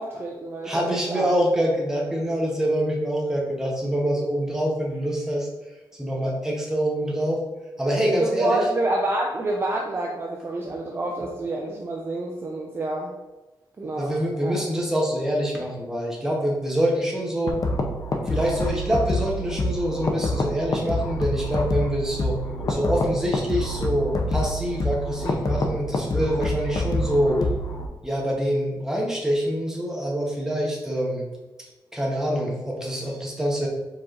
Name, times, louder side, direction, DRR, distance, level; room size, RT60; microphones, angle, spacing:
voice 1, 0.0-1.3 8.1-13.1 13.8-14.6, right 2 dB, 30° right, -1 dB, 0.4 m, -28 dB
voice 2, 0.6-5.5 6.0-7.4 7.8-8.6 14.0-17.6 18.3-22.4 22.7-27.4 28.0-31.3 31.9-33.7, equal, 5° right, -2 dB, 0.9 m, -25 dB
sound 1, 17.5-27.9, left 1 dB, 45° left, 0.5 m, -27 dB
4.7 x 4.2 x 2.5 m, 1.1 s
wide cardioid pair, 140°, 8 cm